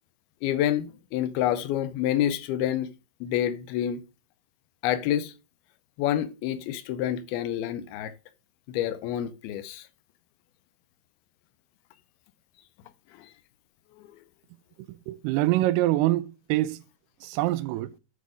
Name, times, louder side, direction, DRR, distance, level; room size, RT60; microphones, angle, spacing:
voice 1, 0.4-2.9 3.2-4.0 4.8-5.3 6.0-8.1 8.7-9.9 13.1-13.3, left 11 dB, 80° left, 2.5 m, -28 dB
voice 2, 15.1-16.8 17.2-17.9, right 16 dB, 90° right, 2.6 m, -25 dB
8.2 x 5.2 x 4.9 m
omnidirectional pair, 4.6 m